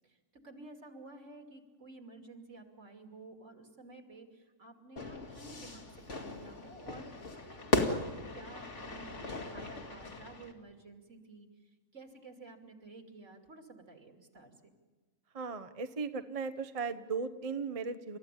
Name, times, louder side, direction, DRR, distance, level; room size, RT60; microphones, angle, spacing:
voice 1, 0.4-7.1 7.5-11.5 11.9-14.7, right 3 dB, 70° right, 4 dB, 3.1 m, -52 dB
Fire / Fireworks, 5.0-10.5, left 2 dB, 65° left, 2.6 m, -37 dB
voice 2, 15.3-18.2, right 5 dB, 30° right, 10 dB, 0.8 m, -37 dB
29.5 x 14.5 x 10.0 m, 1.2 s
omnidirectional pair, 1.3 m